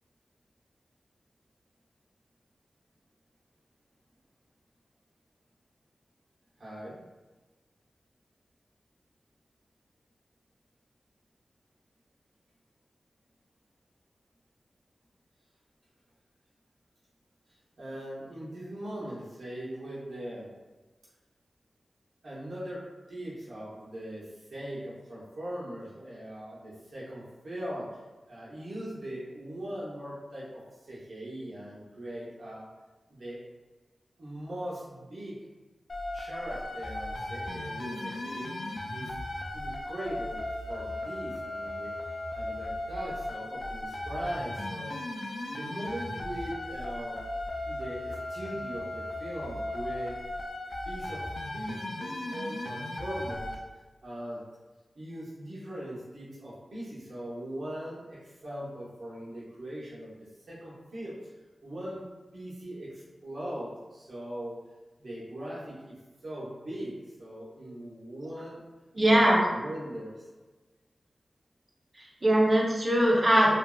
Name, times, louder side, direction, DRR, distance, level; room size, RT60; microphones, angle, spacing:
voice 1, 6.6-7.0 17.8-20.5 22.2-27.9 28.3-32.6 33.1-33.4 34.2-35.4 36.1-38.5 38.9-39.1 39.5-42.0 42.3-44.9 45.5-47.2 47.6-50.2 50.8-51.2 51.5-53.5 54.0-54.4 55.0-60.1 60.5-61.3 61.6-62.0 62.3-64.6 65.0-65.9 66.2-68.6 69.1-70.3, right 1 dB, 70° right, -7 dB, 0.8 m, -40 dB
sound 1, 35.9-53.5, left 1 dB, 60° left, 0.3 m, -37 dB
voice 2, 68.9-69.4 72.0-73.6, right 1 dB, 30° right, -2 dB, 0.6 m, -22 dB
2.9 x 2.6 x 2.2 m, 1.2 s
wide cardioid pair, 120°, 0 cm